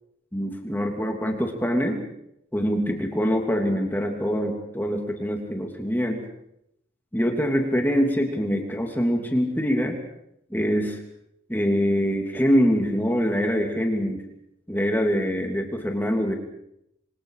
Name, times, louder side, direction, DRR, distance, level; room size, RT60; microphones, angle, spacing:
voice 1, 0.3-2.0 2.5-6.2 7.1-10.0 10.5-11.0 11.5-14.2 14.7-16.3, equal, 10° left, 2 dB, 3.0 m, -24 dB
26.0 x 26.0 x 5.0 m, 0.80 s
head